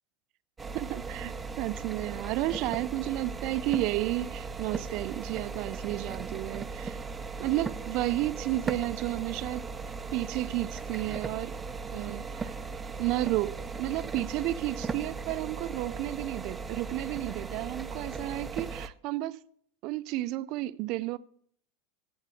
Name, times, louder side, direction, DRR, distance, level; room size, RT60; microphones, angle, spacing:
sound 1, 0.6-18.9, right 4 dB, 15° right, 0.7 m, -38 dB
voice 1, 0.7-7.0 7.4-11.5 11.9-12.6 13.0-19.4 19.8-21.2, right 16 dB, 55° right, 0.6 m, -32 dB
8.3 x 8.2 x 8.4 m
supercardioid pair, 120°, 0 cm